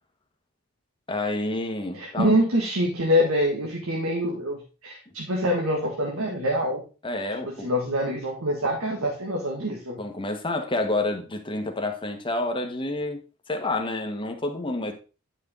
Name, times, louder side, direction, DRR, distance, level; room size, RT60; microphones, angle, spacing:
voice 1, 1.1-2.3 7.0-7.7 10.0-13.2 13.5-14.9, left 2 dB, 25° left, 1.4 m, -29 dB
voice 2, 1.9-6.9 7.4-10.0, equal, 70° right, 1.8 m, -25 dB
9.9 x 6.1 x 3.8 m
head